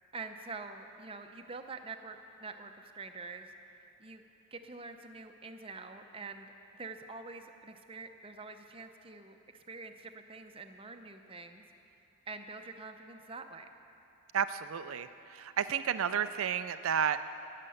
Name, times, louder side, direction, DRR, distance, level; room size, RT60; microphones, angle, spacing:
voice 1, 0.1-3.5 4.0-4.2 4.5-6.5 6.7-11.6 12.3-13.7, right 3 dB, 25° right, 5 dB, 0.7 m, -46 dB
voice 2, 14.3-17.2, right 8 dB, 80° right, 11 dB, 0.4 m, -32 dB
19.5 x 6.8 x 7.8 m, 2.7 s
head